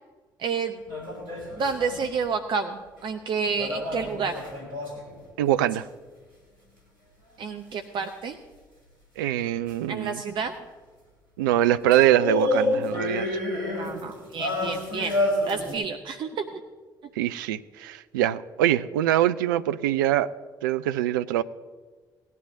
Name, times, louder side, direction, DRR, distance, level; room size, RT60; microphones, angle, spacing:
voice 1, 0.4-0.8 1.6-4.4 7.4-8.4 9.9-10.5 13.8-15.1 15.5-16.6, right 5 dB, 45° right, 6 dB, 0.8 m, -30 dB
sound 1, 0.9-2.1 3.6-5.2 9.7-9.8 11.9-15.7, left 2 dB, 85° left, 2.7 m, -29 dB
voice 2, 5.4-5.9 9.2-10.2 11.4-13.3 17.2-20.3 20.6-21.4, right 12 dB, 70° right, 14 dB, 0.4 m, -23 dB
18.5 x 10.5 x 2.7 m, 1.4 s
figure-of-eight pair, 45°, 11 cm